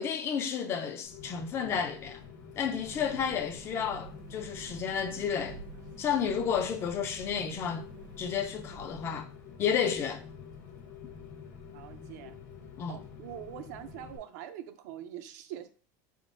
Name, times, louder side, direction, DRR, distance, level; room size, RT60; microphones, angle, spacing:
voice 1, 0.0-2.2 2.6-5.6 6.0-7.8 8.2-9.3 9.6-10.2 12.8-13.0, left 7 dB, 25° left, 0.4 m, -31 dB
Rain, 1.0-14.2, left 6 dB, 85° left, 1.0 m, -48 dB
sound 1, 2.8-9.2, right 4 dB, 90° right, 1.2 m, -50 dB
voice 2, 11.7-12.4 12.9-15.7, right 11 dB, 75° right, 0.5 m, -44 dB
4.0 x 3.6 x 2.5 m
supercardioid pair, 160°, 9 cm